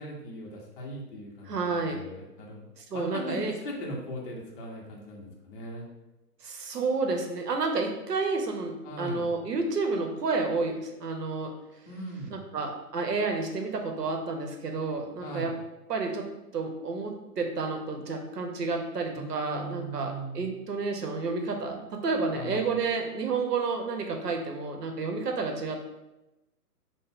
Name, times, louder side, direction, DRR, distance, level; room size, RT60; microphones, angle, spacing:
voice 1, 0.0-5.9 8.8-9.3 11.9-12.5 15.2-15.5 19.2-20.5 22.3-22.6, equal, 35° left, -1 dB, 0.7 m, -39 dB
voice 2, 1.5-2.0 2.8-3.5 6.4-11.5 12.3-15.5 15.9-16.3 16.5-26.0, right 4 dB, 85° right, 3 dB, 0.8 m, -30 dB
3.6 x 2.1 x 3.5 m, 0.98 s
figure-of-eight pair, 130°, 47 cm